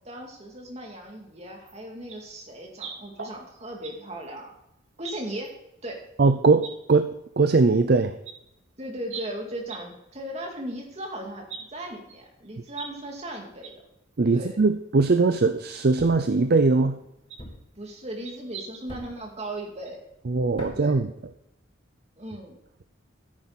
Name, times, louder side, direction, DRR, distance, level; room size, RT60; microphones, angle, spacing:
voice 1, 0.0-4.5 5.0-5.6 5.8-6.1 8.8-13.8 14.3-14.6 17.8-20.0 20.7-21.0 22.2-22.6, right 1 dB, 35° right, 1 dB, 2.5 m, -37 dB
sound 1, 1.6-1.8 2.1-2.2 2.7-3.9 4.2-4.4 5.0-5.5 6.1-6.2 6.6-6.7 7.9-8.0 8.2-8.3 9.1-9.3 9.7-9.8 10.1-10.2 10.5-10.6 11.5-11.6 12.1-12.9 13.1-13.2 13.6-13.7 14.1-14.2 15.2-15.3 16.0-16.1 17.3-17.5 18.2-19.1 19.4-19.5 19.8-19.9, right 6 dB, 85° right, 2.6 m, -40 dB
voice 2, 6.2-8.2 14.2-17.0 20.3-21.1, right 3 dB, 55° right, 9 dB, 0.5 m, -21 dB
Thump thud, 16.0-16.4 17.4-17.8 18.9-19.3 20.6-21.0, left 1 dB, 30° left, 2.2 m, -41 dB
13.0 x 9.8 x 4.1 m, 0.81 s
head